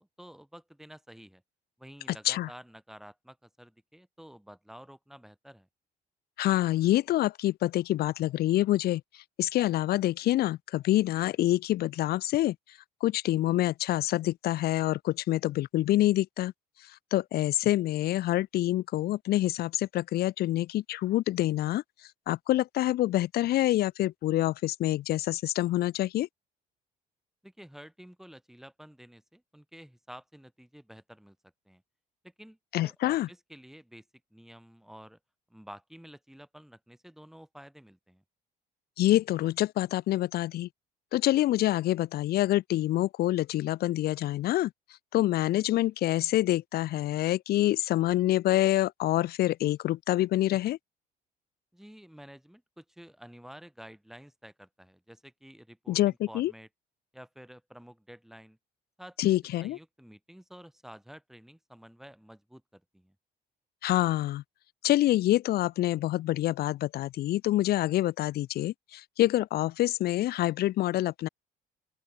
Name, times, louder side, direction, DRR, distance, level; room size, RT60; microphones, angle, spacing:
voice 1, 0.0-1.4 1.8-5.7 27.4-31.4 31.7-31.8 32.2-34.1 34.3-35.2 35.5-38.2 51.7-56.7 57.1-58.6 59.0-63.2, equal, ahead, 4.0 m, -51 dB
voice 2, 6.4-9.0 9.4-12.6 13.0-16.5 17.1-21.8 22.3-26.3 32.7-33.3 39.0-40.7 41.1-44.7 45.1-50.8 55.9-56.5 59.2-59.8 63.8-64.4 64.8-71.3, left 15 dB, 65° left, 0.9 m, -26 dB
open air
cardioid pair, 110°, 17 cm